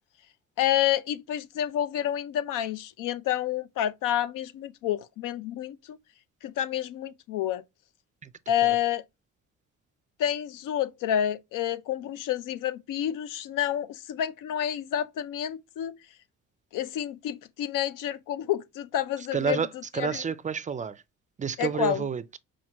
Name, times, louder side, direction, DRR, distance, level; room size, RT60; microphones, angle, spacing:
voice 1, 0.6-6.0 6.4-7.6 8.5-9.0 10.2-15.9 16.7-19.6 20.0-20.2 21.6-22.1, left 11 dB, 80° left, 0.6 m, -29 dB
voice 2, 19.3-21.0 21.4-22.4, right 6 dB, 25° right, 0.3 m, -30 dB
5.7 x 2.6 x 2.8 m
cardioid pair, 115°, 31 cm